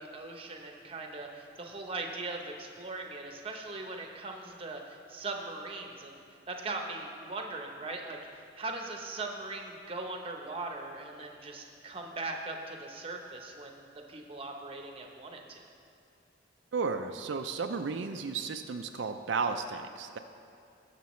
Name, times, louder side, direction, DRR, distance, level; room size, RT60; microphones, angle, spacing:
voice 1, 0.0-15.7, right 3 dB, 30° right, 2 dB, 0.8 m, -40 dB
voice 2, 16.7-20.2, right 5 dB, 75° right, 6 dB, 0.4 m, -33 dB
19.5 x 6.7 x 3.1 m, 2.5 s
head